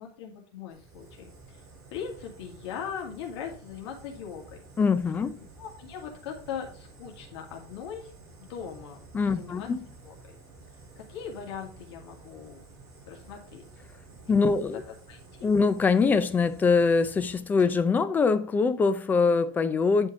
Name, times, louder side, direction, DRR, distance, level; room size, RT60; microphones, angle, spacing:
voice 1, 0.0-1.6 1.9-4.6 5.6-8.1 8.4-9.0 9.4-9.7 10.0-10.4 11.0-12.6 13.1-13.6 14.1-14.8 15.1-15.5, left 7 dB, 80° left, 2.2 m, -40 dB
Fire, 0.7-17.7, right 3 dB, 25° right, 3.2 m, -51 dB
voice 2, 4.8-5.4 9.1-9.8 14.3-14.8 15.4-20.1, left 4 dB, 15° left, 0.5 m, -23 dB
9.7 x 4.6 x 4.8 m
supercardioid pair, 170°, 14 cm